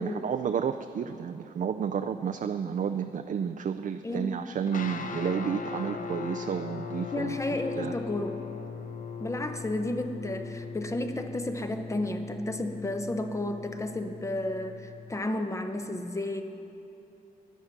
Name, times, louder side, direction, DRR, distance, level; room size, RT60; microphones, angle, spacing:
voice 1, 0.0-7.3 7.8-8.0, right 7 dB, 55° right, 7 dB, 0.4 m, -31 dB
voice 2, 4.0-4.4 7.1-8.4 9.2-16.4, left 1 dB, 20° left, 7 dB, 0.8 m, -32 dB
sound 1, 4.7-15.2, left 5 dB, 60° left, 0.8 m, -39 dB
15.5 x 10.5 x 5.9 m, 2.8 s
wide cardioid pair, 125°, 16 cm